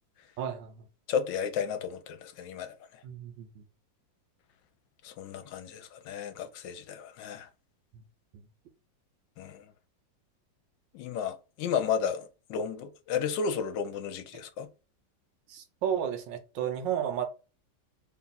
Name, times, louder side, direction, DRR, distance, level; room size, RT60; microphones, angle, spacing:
voice 1, 0.4-0.7 3.0-3.6 8.3-8.4 15.5-17.2, right 9 dB, 75° right, 1.4 m, -32 dB
voice 2, 1.1-2.8 5.0-7.5 9.4-9.7 10.9-14.7, left 7 dB, 75° left, 1.2 m, -33 dB
3.5 x 2.4 x 4.0 m
omnidirectional pair, 2.0 m